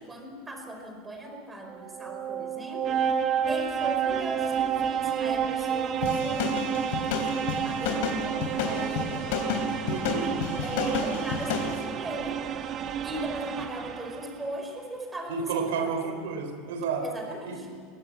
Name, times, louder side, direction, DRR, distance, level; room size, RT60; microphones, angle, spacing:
voice 1, 0.0-3.1 3.5-9.3 10.6-12.4 13.0-15.9 17.0-17.7, right 1 dB, 15° right, 4 dB, 4.8 m, -38 dB
sound 1, 1.7-14.5, right 8 dB, 35° right, 1.2 m, -30 dB
surf-ride-loop, 6.0-11.8, left 6 dB, 70° left, 3.8 m, -30 dB
voice 2, 9.8-10.4 15.3-17.1 17.5-17.6, right 5 dB, 85° right, 7 dB, 3.6 m, -31 dB
22.5 x 17.0 x 9.5 m, 2.1 s
supercardioid pair, 130°, 0 cm